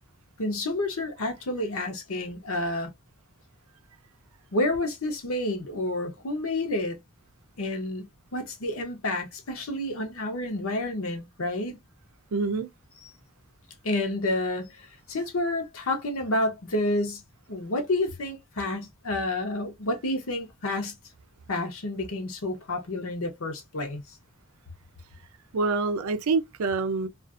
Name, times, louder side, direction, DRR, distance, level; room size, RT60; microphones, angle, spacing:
voice 1, 0.4-2.9 4.5-7.0 7.6-11.8 13.8-17.2 17.5-20.9 21.5-24.2, left 2 dB, 70° left, 0.8 m, -29 dB
voice 2, 12.3-12.7 25.5-27.1, right 4 dB, 75° right, 0.5 m, -26 dB
2.5 x 2.4 x 2.4 m
head